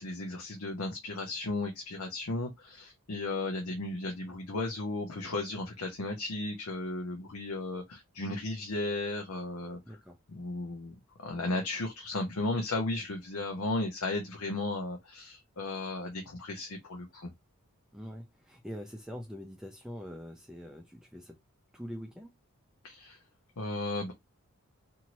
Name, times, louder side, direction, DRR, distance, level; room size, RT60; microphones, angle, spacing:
voice 1, 0.0-9.8 10.3-17.3 22.8-23.2 23.6-24.1, left 2 dB, 70° left, 0.7 m, -35 dB
voice 2, 9.8-10.2 13.3-13.5 17.9-21.4 21.7-22.3, equal, 5° right, 0.4 m, -44 dB
2.7 x 2.6 x 3.0 m
head